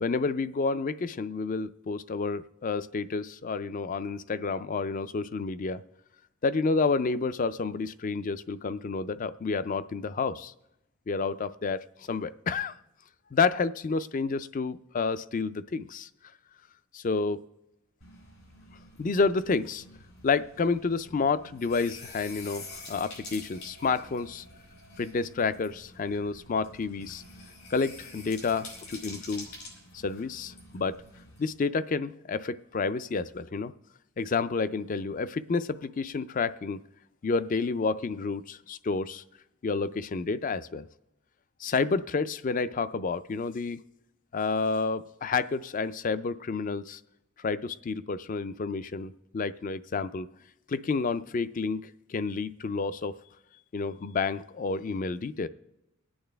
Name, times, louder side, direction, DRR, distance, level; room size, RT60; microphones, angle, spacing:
voice 1, 0.0-5.8 6.4-10.5 11.1-12.7 13.3-16.1 16.9-17.4 19.0-19.8 20.2-24.4 25.0-27.2 27.7-29.5 29.9-31.0 31.4-33.7 34.2-36.8 37.2-39.2 39.6-40.8 41.6-43.8 44.3-47.0 47.4-50.3 50.7-53.1 53.7-55.5, left 4 dB, 35° left, 14 dB, 0.4 m, -30 dB
sound 1, 18.0-31.5, left 2 dB, 90° left, 5.0 m, -48 dB
24.0 x 8.8 x 3.4 m, 0.90 s
head